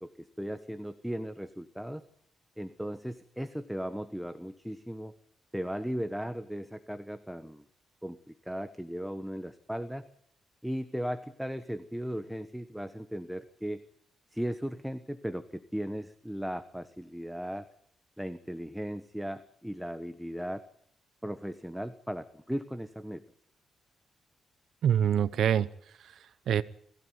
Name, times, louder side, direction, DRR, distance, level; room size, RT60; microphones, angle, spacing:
voice 1, 0.0-2.0 2.6-5.1 5.5-7.6 8.0-10.1 10.6-13.8 14.3-17.7 18.2-20.6 21.2-23.2, equal, ahead, 10 dB, 1.3 m, -37 dB
voice 2, 24.8-26.6, right 9 dB, 80° right, 14 dB, 0.8 m, -27 dB
21.5 x 16.0 x 9.5 m, 0.68 s
cardioid pair, 90°, 0 cm